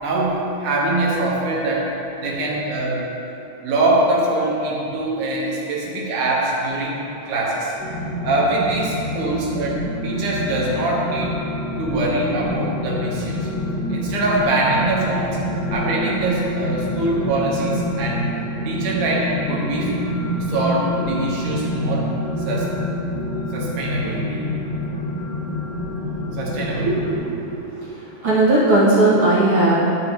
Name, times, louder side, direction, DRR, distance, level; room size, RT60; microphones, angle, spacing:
voice 1, 0.0-1.9 2.2-3.1 3.6-7.7 8.2-11.3 11.8-13.5 13.9-15.4 15.7-18.3 18.7-19.9 20.5-22.1 22.5-22.7 23.5-24.4 26.3-27.1, right 2 dB, 80° right, -3 dB, 2.7 m, -23 dB
sound 1, 7.8-27.2, left 1 dB, 85° left, 1.1 m, -27 dB
voice 2, 26.8-27.9 28.2-29.7, right 2 dB, 50° right, -9 dB, 2.4 m, -18 dB
11.5 x 5.3 x 2.9 m, 2.9 s
omnidirectional pair, 3.6 m